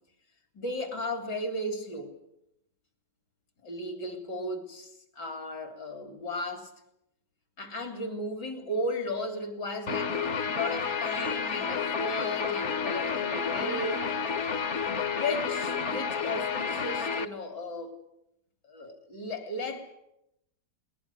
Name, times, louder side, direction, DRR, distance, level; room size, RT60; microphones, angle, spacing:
voice 1, 0.5-2.1 3.6-6.7 7.6-14.1 14.9-17.9 18.7-19.9, left 1 dB, 80° left, 3.9 m, -35 dB
Guitar, 9.9-17.2, left 6 dB, 50° left, 1.2 m, -30 dB
22.0 x 19.5 x 8.4 m
omnidirectional pair, 1.8 m